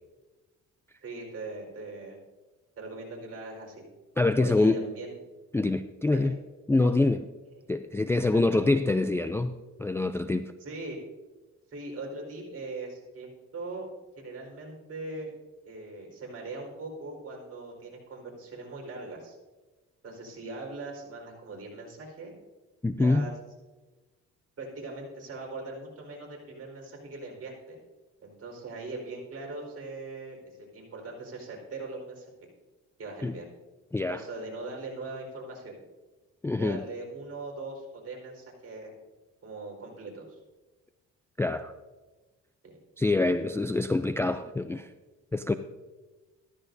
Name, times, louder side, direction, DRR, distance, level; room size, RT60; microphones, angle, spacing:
voice 1, 1.0-2.2 2.8-3.8 4.4-5.2 6.1-6.3 6.8-6.9 8.3-8.6 10.6-11.0 11.7-13.9 14.2-15.3 15.6-19.4 20.0-22.3 22.9-23.3 24.6-27.8 28.2-32.3 33.0-33.5 34.1-35.8 36.6-38.9 39.4-40.4 42.6-42.8, right 3 dB, 50° right, -1 dB, 4.5 m, -40 dB
voice 2, 4.2-4.8 5.5-6.4 6.7-7.2 7.7-9.5 9.8-10.5 22.8-23.3 33.2-33.3 33.9-34.2 36.4-36.8 41.4-41.7 43.0-44.9 45.3-45.5, left 2 dB, 10° left, 9 dB, 0.4 m, -25 dB
14.0 x 13.5 x 2.7 m, 1.2 s
cardioid pair, 90°, 30 cm